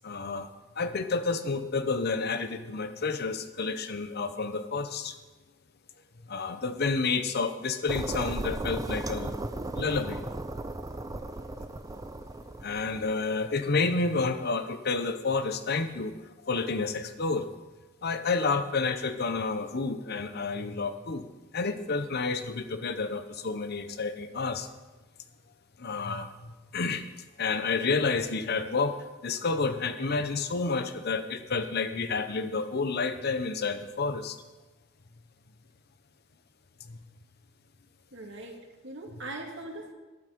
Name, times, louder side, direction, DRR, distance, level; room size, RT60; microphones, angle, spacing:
voice 1, 0.0-0.5 0.8-5.1 6.2-9.4 9.7-10.3 12.6-16.2 16.4-17.5 18.0-21.3 21.5-24.7 25.8-27.0 27.4-29.0 29.2-34.4 36.8-37.0, left 4 dB, 50° left, 9 dB, 0.9 m, -30 dB
sound 1, 7.9-13.1, right 2 dB, 20° right, 0.5 m, -36 dB
voice 2, 38.1-39.9, right 2 dB, 65° right, 1 dB, 2.3 m, -41 dB
12.5 x 11.0 x 5.1 m, 1.2 s
head